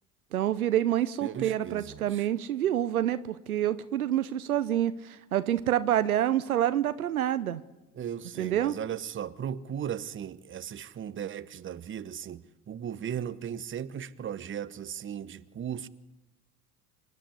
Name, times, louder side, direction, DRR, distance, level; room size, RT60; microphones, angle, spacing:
voice 1, 0.3-7.6 8.4-8.7, right 11 dB, 80° right, 0.8 m, -27 dB
voice 2, 1.2-2.3 8.0-15.9, right 9 dB, 30° right, 1.0 m, -37 dB
27.0 x 10.5 x 9.8 m
figure-of-eight pair, 65°, 43 cm